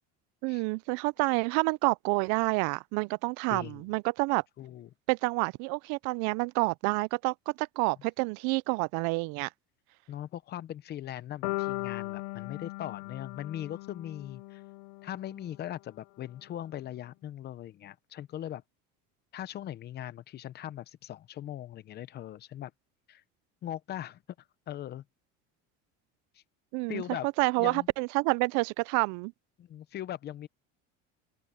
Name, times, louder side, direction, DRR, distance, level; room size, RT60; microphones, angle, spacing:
voice 1, 0.4-4.4 5.1-9.5 26.7-27.0 27.4-29.3, right 28 dB, 75° right, 0.5 m, -28 dB
voice 2, 3.5-3.8 4.6-4.9 10.1-14.6 15.0-18.6 19.3-22.7 23.1-23.2 23.6-24.2 24.7-25.0 26.3-26.4 26.9-27.3 27.6-27.9 29.6-30.5, left 12 dB, 35° left, 0.7 m, -40 dB
sound 1, 11.4-15.5, left 23 dB, 90° left, 0.7 m, -38 dB
open air
cardioid pair, 165°, 30 cm